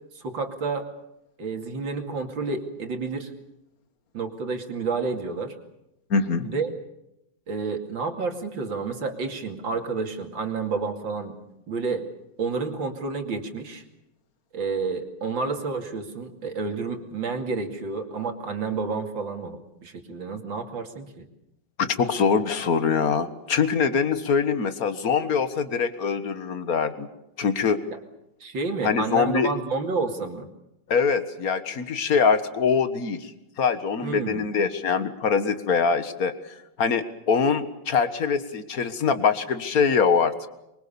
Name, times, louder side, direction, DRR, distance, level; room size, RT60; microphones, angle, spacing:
voice 1, 0.1-0.9 1.4-3.3 4.1-5.5 6.4-6.7 7.5-11.4 11.7-12.0 12.4-13.8 14.5-21.2 27.9-28.0 28.4-30.5 34.0-34.4, right 4 dB, 90° right, 4 dB, 3.2 m, -30 dB
voice 2, 6.1-6.5 21.8-27.1 27.4-27.8 28.8-29.5 30.9-33.3 33.6-36.5 36.8-40.3, left 6 dB, 50° left, 11 dB, 1.9 m, -23 dB
24.5 x 23.5 x 7.1 m, 0.87 s
omnidirectional pair, 2.0 m